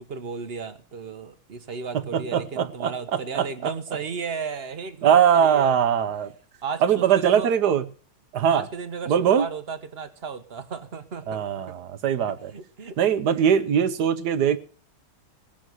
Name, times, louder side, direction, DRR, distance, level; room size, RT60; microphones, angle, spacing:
voice 1, 0.1-5.8 6.6-7.5 8.5-11.7 12.3-13.5, right 5 dB, 40° right, 1.0 m, -35 dB
voice 2, 2.1-3.5 5.0-6.3 6.8-7.8 8.3-8.7 9.1-9.5 11.3-12.5 13.0-14.6, right 8 dB, 60° right, 1.3 m, -21 dB
19.0 x 6.5 x 7.9 m
omnidirectional pair, 2.3 m